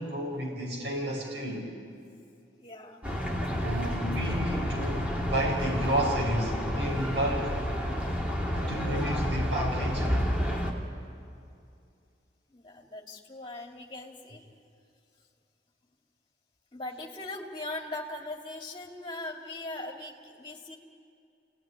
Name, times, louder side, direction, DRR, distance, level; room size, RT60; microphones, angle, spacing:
voice 1, 0.0-1.7 3.5-7.6 8.5-10.3, right 1 dB, 70° right, -2 dB, 6.3 m, -31 dB
voice 2, 2.5-3.0 12.5-14.4 16.7-20.8, left 2 dB, 25° left, 1 dB, 2.5 m, -40 dB
sound 1, 3.0-10.7, equal, 5° right, 2.6 m, -30 dB
28.5 x 18.0 x 10.0 m, 2.4 s
head